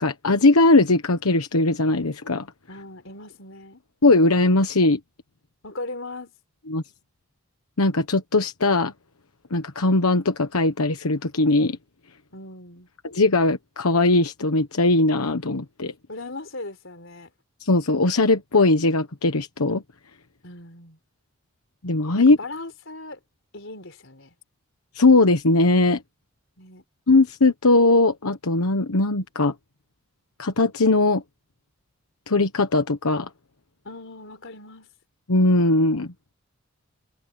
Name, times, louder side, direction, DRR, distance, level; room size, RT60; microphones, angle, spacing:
voice 1, 0.0-2.5 4.0-5.0 6.7-6.8 7.8-8.9 9.5-11.8 13.1-15.9 17.6-19.8 21.8-22.4 24.9-26.0 27.1-29.5 30.4-31.2 32.3-33.3 35.3-36.1, left 2 dB, 90° left, 1.2 m, -19 dB
voice 2, 2.7-3.8 5.6-6.4 12.3-12.9 16.1-17.3 20.4-21.0 22.2-23.2 23.5-24.3 26.6-26.8 33.8-34.9, left 2 dB, 65° left, 4.2 m, -38 dB
head